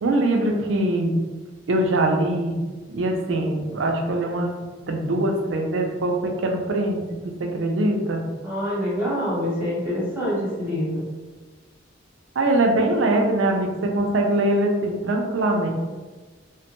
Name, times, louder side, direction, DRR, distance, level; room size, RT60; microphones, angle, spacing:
voice 1, 0.0-1.1 1.7-2.5 2.9-4.5 4.9-7.0 7.4-8.2 12.4-15.7, right 1 dB, 75° right, 2 dB, 0.4 m, -22 dB
voice 2, 8.4-11.0, equal, 10° right, -8 dB, 0.9 m, -26 dB
3.1 x 2.1 x 2.9 m, 1.3 s
head